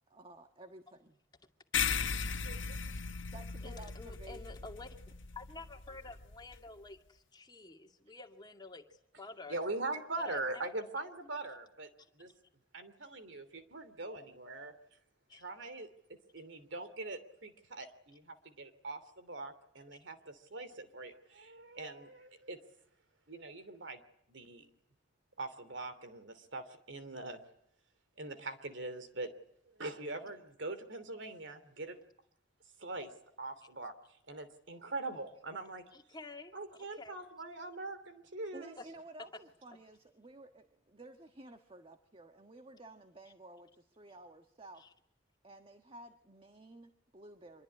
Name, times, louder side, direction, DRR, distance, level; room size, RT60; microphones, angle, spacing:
voice 1, 0.1-1.2 3.3-4.7 8.0-8.1 38.5-44.9 45.4-47.6, right 2 dB, 30° right, 7 dB, 1.5 m, -53 dB
sound 1, 1.7-6.6, left 6 dB, 80° left, 1.3 m, -37 dB
voice 2, 2.4-2.8 9.5-11.9 12.1-12.3 12.7-14.7 15.3-22.6 23.3-24.0 24.3-24.7 25.4-27.4 28.2-29.3 29.7-32.0 32.8-33.1 33.4-33.9 34.3-35.8 36.5-38.7, right 2 dB, 70° right, 11 dB, 3.0 m, -42 dB
voice 3, 3.6-4.9 5.3-8.8 9.2-9.6 10.2-10.6 15.3-15.4 35.9-37.1 44.8-44.9, left 3 dB, 25° left, 4 dB, 2.3 m, -50 dB
26.0 x 23.0 x 9.8 m, 0.71 s
head